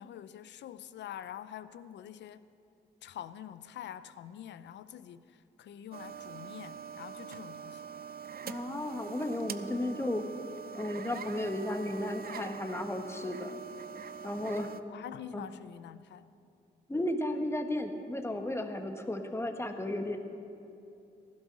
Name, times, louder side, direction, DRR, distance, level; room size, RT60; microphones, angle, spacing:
voice 1, 0.0-2.5 3.0-7.8 14.9-16.3, left 10 dB, 80° left, 14 dB, 0.6 m, -46 dB
sound 1, 5.9-14.8, right 7 dB, 55° right, 0.6 m, -44 dB
voice 2, 8.4-10.3 10.7-13.6 14.2-14.7 15.3-15.5 16.9-20.2, left 1 dB, 15° left, 5 dB, 1.5 m, -34 dB
15.5 x 11.5 x 6.1 m, 2.7 s
cardioid pair, 65°, 18 cm